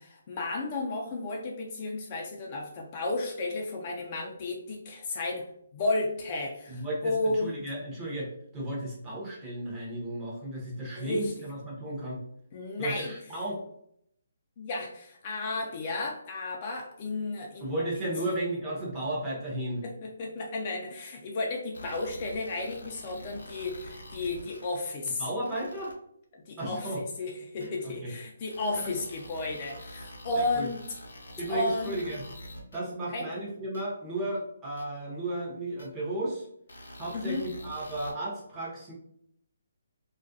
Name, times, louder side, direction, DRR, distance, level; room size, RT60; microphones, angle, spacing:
voice 1, 0.0-5.4 5.7-7.6 10.9-11.3 12.5-13.1 14.6-17.8 18.2-18.3 19.8-25.2 26.3-30.8 31.5-32.0 33.1-33.3 37.1-37.5, left 2 dB, 35° left, 0 dB, 0.4 m, -33 dB
voice 2, 6.7-12.2 12.8-13.6 17.6-19.8 25.2-25.9 26.6-27.0 27.6-28.1 28.7-28.9 30.3-30.7 31.4-32.2 32.7-36.5 37.0-38.9, right 1 dB, 15° right, -5 dB, 0.7 m, -34 dB
sound 1, 21.7-24.9 25.4-25.9 26.6-26.7 27.6-27.7 28.5-32.8 33.7-33.8 34.8-34.9 35.8-35.9 36.7-38.1, equal, 85° left, 0.6 m, -46 dB
2.4 x 2.1 x 2.6 m, 0.71 s
hypercardioid pair, 155°, 0 cm